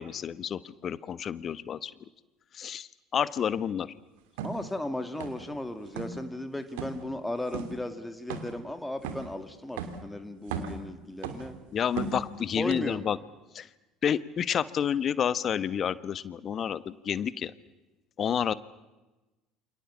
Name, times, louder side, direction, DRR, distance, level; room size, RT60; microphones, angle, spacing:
voice 1, 0.0-1.9 2.5-3.9 11.7-13.2 13.5-13.7 14.0-17.5 18.2-18.5, left 8 dB, 40° left, 17 dB, 1.2 m, -30 dB
voice 2, 4.4-11.5 12.6-13.0, left 1 dB, 5° left, 8 dB, 2.2 m, -36 dB
sound 1, 4.4-4.6 5.2-5.6 5.9-6.2 6.8-7.0 7.5-7.8 8.3-8.6 9.0-9.3 9.8-10.0 10.4-10.8 11.2-11.6 12.0-12.3 12.7-12.8, right 6 dB, 60° right, 2.7 m, -36 dB
29.0 x 27.5 x 7.3 m, 1.1 s
figure-of-eight pair, 60°, 0 cm